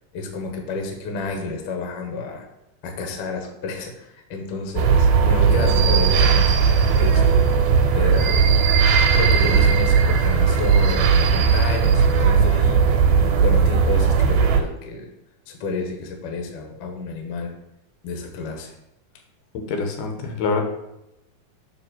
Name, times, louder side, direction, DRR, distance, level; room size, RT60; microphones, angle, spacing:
voice 1, 0.1-2.5 2.8-6.5 6.8-7.4 7.9-8.6 9.1-12.8 13.2-15.1 15.5-17.5 18.0-18.7, left 3 dB, 60° left, 2 dB, 1.7 m, -30 dB
sound 1, 4.8-14.6, right 6 dB, 90° right, 2.3 m, -17 dB
voice 2, 19.5-20.6, left 4 dB, 85° left, 3 dB, 2.6 m, -25 dB
6.7 x 3.4 x 5.9 m, 0.89 s
omnidirectional pair, 3.7 m